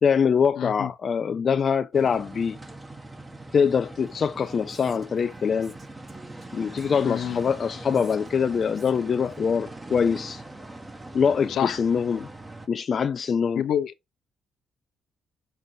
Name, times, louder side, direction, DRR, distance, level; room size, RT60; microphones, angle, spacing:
voice 1, 0.0-2.6 3.5-5.8 6.5-10.4 11.1-12.3 12.7-13.6, left 6 dB, 45° left, 0.4 m, -24 dB
voice 2, 0.6-0.9 7.0-7.4 11.5-11.8 13.5-13.9, left 9 dB, 75° left, 0.9 m, -27 dB
sound 1, 1.9-12.7, right 2 dB, 20° right, 1.3 m, -42 dB
Female speech woman speaking, 4.0-9.4, right 3 dB, 40° right, 1.9 m, -52 dB
6.8 x 3.6 x 4.0 m
cardioid pair, 90°, 0 cm